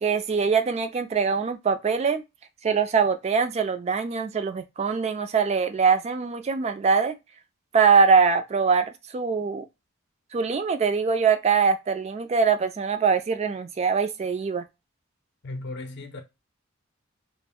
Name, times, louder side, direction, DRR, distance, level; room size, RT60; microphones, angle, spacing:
voice 1, 0.0-2.2 2.6-7.2 7.7-9.7 10.3-14.7, right 5 dB, 35° right, 0.3 m, -23 dB
voice 2, 15.4-16.2, left 2 dB, 60° left, 0.6 m, -36 dB
2.4 x 2.0 x 3.5 m
head